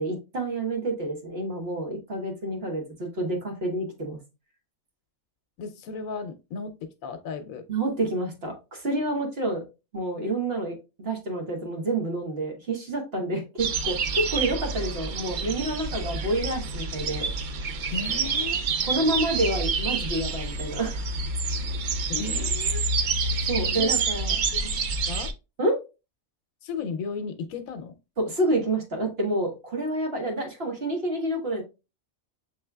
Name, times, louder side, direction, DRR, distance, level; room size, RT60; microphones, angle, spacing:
voice 1, 0.0-4.2 7.7-9.6 9.9-17.3 18.8-21.0 23.5-24.4 25.6-25.8 28.2-31.6, right 1 dB, 50° right, 1.4 m, -28 dB
voice 2, 5.6-7.7 17.9-18.6 22.1-22.8 23.8-24.0 24.5-24.7 25.1-25.3 26.6-27.9, left 5 dB, 80° left, 1.1 m, -35 dB
sound 1, 13.6-25.3, right 4 dB, 90° right, 0.4 m, -28 dB
6.5 x 3.2 x 2.2 m
omnidirectional pair, 1.5 m